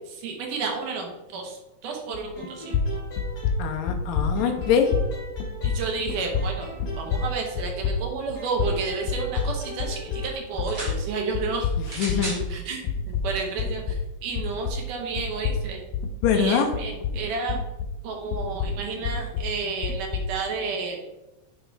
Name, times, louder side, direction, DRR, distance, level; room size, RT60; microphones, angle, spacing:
voice 1, 0.1-2.8 5.6-6.7 7.0-12.2 12.5-15.8 16.3-17.6 18.0-21.0, right 4 dB, 70° right, 1 dB, 2.5 m, -31 dB
sound 1, 2.1-2.5 2.7-10.3 10.6-14.9 15.2-18.0 18.3-20.4, left 5 dB, 90° left, 2.4 m, -28 dB
sound 2, 2.4-4.0 4.4-8.0 8.4-10.4, left 1 dB, 50° left, 2.4 m, -41 dB
voice 2, 3.6-4.9 12.0-12.4 16.2-16.7, left 7 dB, 70° left, 4 dB, 1.8 m, -23 dB
sound 3, 10.5-11.0 11.9-12.5 13.4-13.5, right 1 dB, 35° right, 2.0 m, -34 dB
8.7 x 3.0 x 4.5 m, 0.98 s
omnidirectional pair, 4.0 m